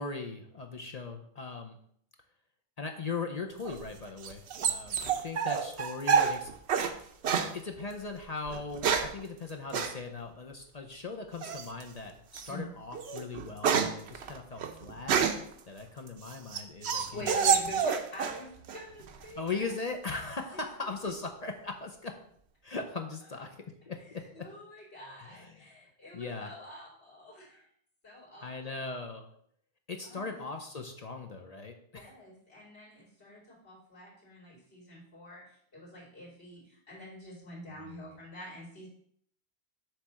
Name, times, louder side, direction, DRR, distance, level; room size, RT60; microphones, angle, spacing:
voice 1, 0.0-1.8 2.8-7.0 7.5-15.1 15.7-17.6 19.4-22.2 22.6-24.5 25.2-25.7 26.1-26.5 28.4-29.3 29.9-32.1 37.7-38.1, left 4 dB, 40° left, 3 dB, 0.7 m, -39 dB
sound 1, 3.7-6.9 7.2-7.5 8.5-9.2 9.7-9.9 11.4-11.8 12.3-12.5 12.9-15.5 16.1-18.4 18.7-19.3, right 7 dB, 80° right, 0.9 m, -28 dB
voice 2, 17.1-19.8 20.5-20.6 24.0-27.7 28.0-28.8 30.0-30.3 31.9-38.9, left 1 dB, 75° left, -8 dB, 3.4 m, -46 dB
7.3 x 3.4 x 6.2 m, 0.66 s
omnidirectional pair, 1.1 m